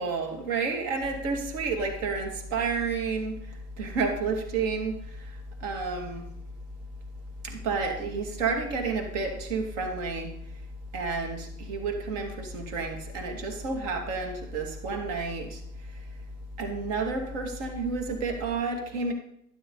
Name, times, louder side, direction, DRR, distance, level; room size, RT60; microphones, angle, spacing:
voice 1, 0.0-6.3 7.4-10.3 10.9-15.6 16.6-19.1, right 4 dB, 50° right, 3 dB, 2.4 m, -31 dB
sound 1, 1.0-18.6, left 2 dB, ahead, 0.7 m, -42 dB
12.0 x 12.0 x 3.9 m, 0.73 s
hypercardioid pair, 105°, 47 cm